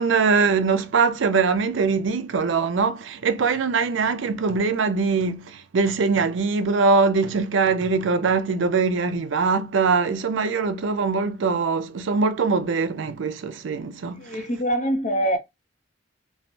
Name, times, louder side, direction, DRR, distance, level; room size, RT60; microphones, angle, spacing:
voice 1, 0.0-14.4, right 4 dB, 70° right, 0.4 m, -22 dB
voice 2, 14.2-15.4, right 1 dB, 40° left, 0.8 m, -24 dB
3.2 x 2.0 x 2.5 m
head